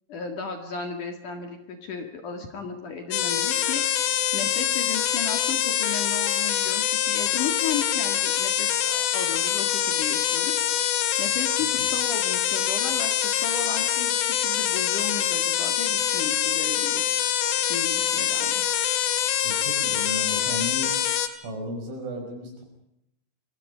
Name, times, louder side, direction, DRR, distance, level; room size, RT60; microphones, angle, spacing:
voice 1, 0.1-3.8 4.3-10.6 11.2-17.0 17.5-18.6, left 5 dB, 50° left, 5 dB, 2.9 m, -35 dB
sound 1, 3.1-21.3, left 11 dB, 80° left, 4.2 m, -25 dB
voice 2, 19.4-21.0 21.3-22.6, left 1 dB, 75° right, 3 dB, 8.6 m, -35 dB
28.5 x 23.5 x 5.2 m, 0.80 s
omnidirectional pair, 5.7 m